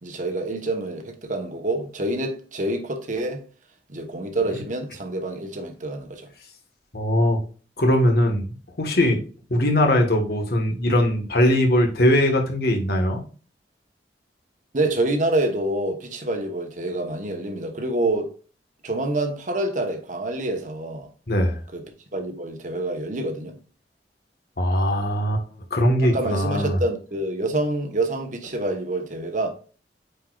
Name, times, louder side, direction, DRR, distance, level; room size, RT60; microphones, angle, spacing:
voice 1, 0.0-3.4 3.9-6.3 14.7-18.3 18.8-21.1 21.7-21.8 22.1-23.6 26.0-29.5, right 2 dB, 45° right, 1.2 m, -27 dB
voice 2, 6.9-7.4 7.8-8.5 8.8-9.2 9.5-13.2 21.3-21.6 24.6-25.4 25.7-26.8, left 1 dB, 60° left, 1.4 m, -20 dB
8.6 x 4.5 x 2.4 m
head